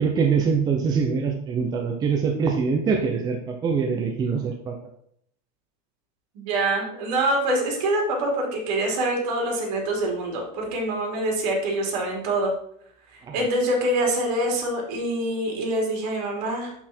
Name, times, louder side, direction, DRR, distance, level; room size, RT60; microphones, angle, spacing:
voice 1, 0.0-4.8 13.2-13.4, right 5 dB, 20° right, 3 dB, 0.7 m, -24 dB
voice 2, 6.3-12.5 13.3-16.7, right 1 dB, 65° right, 0 dB, 3.4 m, -25 dB
11.5 x 4.4 x 4.4 m, 0.69 s
supercardioid pair, 165°, 21 cm